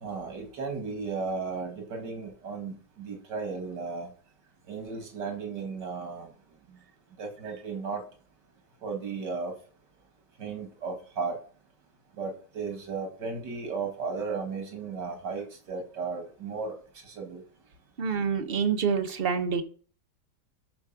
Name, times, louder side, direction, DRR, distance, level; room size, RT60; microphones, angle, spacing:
voice 1, 0.0-4.1 4.7-6.3 7.2-8.0 8.8-9.5 10.4-11.4 12.2-16.7 17.2-17.4, right 4 dB, 80° right, 2.7 m, -35 dB
voice 2, 18.0-19.6, right 6 dB, 40° right, 1.0 m, -27 dB
13.5 x 4.9 x 5.8 m
omnidirectional pair, 1.9 m